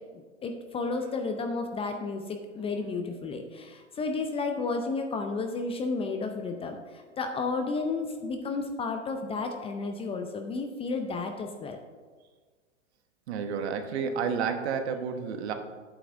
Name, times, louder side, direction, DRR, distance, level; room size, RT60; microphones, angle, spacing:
voice 1, 0.1-11.8, left 3 dB, 15° left, 5 dB, 0.5 m, -32 dB
voice 2, 13.3-15.5, right 6 dB, 60° right, 7 dB, 1.2 m, -30 dB
11.0 x 8.7 x 2.6 m, 1.5 s
hypercardioid pair, 110°, 37 cm